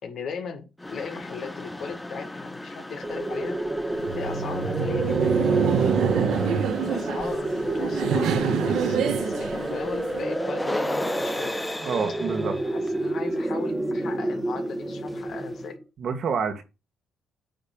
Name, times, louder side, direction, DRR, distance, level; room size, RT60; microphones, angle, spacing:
voice 1, 0.0-3.6 4.1-6.0 6.8-11.6 12.7-15.8, left 5 dB, 65° left, 1.9 m, -37 dB
sound 1, 0.8-15.7, left 1 dB, 10° left, 0.8 m, -37 dB
sound 2, 3.0-15.8, right 1 dB, 15° right, 1.4 m, -30 dB
Laughter, 3.9-10.2, right 7 dB, 80° right, 1.3 m, -26 dB
voice 2, 11.8-12.6 16.0-16.6, right 6 dB, 60° right, 1.7 m, -27 dB
9.1 x 3.3 x 5.3 m
cardioid pair, 90°, 0 cm